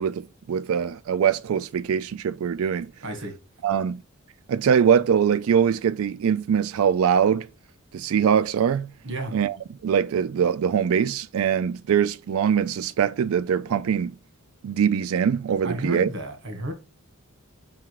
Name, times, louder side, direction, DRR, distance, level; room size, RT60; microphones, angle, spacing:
voice 1, 0.0-2.9 3.6-4.0 4.5-7.5 7.9-8.9 9.3-9.6 9.8-14.1 14.6-16.1, right 7 dB, 70° right, 0.3 m, -22 dB
voice 2, 3.0-3.3 9.0-9.3 15.6-16.7, right 1 dB, 55° right, 1.5 m, -32 dB
5.6 x 3.7 x 4.7 m
head